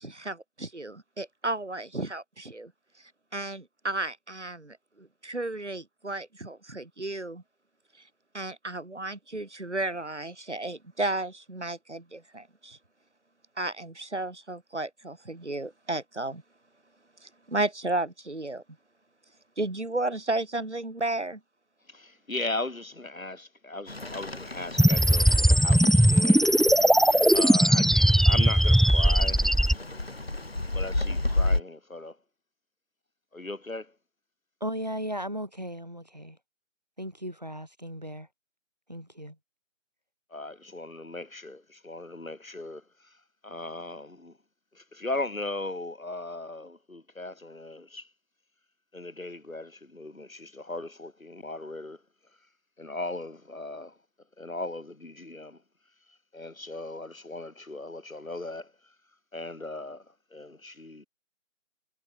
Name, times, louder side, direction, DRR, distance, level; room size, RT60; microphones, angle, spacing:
voice 1, 0.0-2.7 3.3-7.4 8.3-12.8 13.6-16.4 17.2-18.6 19.6-21.4, right 2 dB, 60° right, 5.0 m, -33 dB
voice 2, 21.9-26.5 27.3-29.5 30.7-32.2 33.3-33.9 40.3-43.2 43.4-44.3 44.7-48.1 48.9-52.0 52.8-54.0 54.4-55.6 56.3-58.9 59.3-61.1, left 2 dB, 85° left, 5.0 m, -38 dB
Rain, 23.9-31.6, left 2 dB, 45° left, 6.4 m, -33 dB
sound 1, 24.8-29.7, right 1 dB, ahead, 0.5 m, -19 dB
voice 3, 34.6-36.4 37.0-38.3 38.9-39.3, equal, 30° right, 1.4 m, -36 dB
figure-of-eight pair, 180°, 40 cm